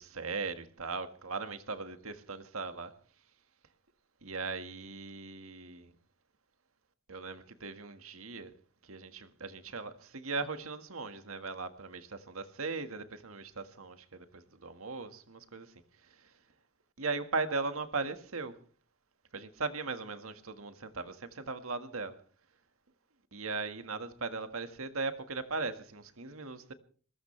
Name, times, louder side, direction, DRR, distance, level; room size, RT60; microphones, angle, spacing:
voice 1, 0.0-2.9 4.2-5.9 7.1-8.5 8.8-16.4 17.0-18.6 19.3-22.2 23.3-26.7, right 4 dB, 85° right, 1.7 m, -38 dB
22.5 x 19.5 x 3.3 m
head